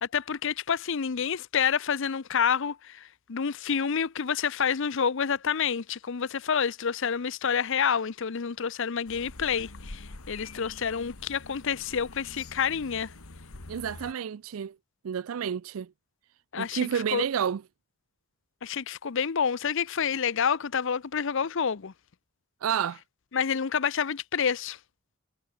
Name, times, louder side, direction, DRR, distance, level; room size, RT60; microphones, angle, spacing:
voice 1, 0.0-13.1 16.5-17.2 18.6-21.9 23.3-24.8, left 7 dB, 60° left, 0.6 m, -28 dB
sound 1, 9.1-14.1, left 3 dB, 90° left, 1.9 m, -45 dB
voice 2, 13.7-14.7 15.0-15.9 16.6-17.6 22.6-23.0, right 8 dB, 75° right, 0.4 m, -30 dB
head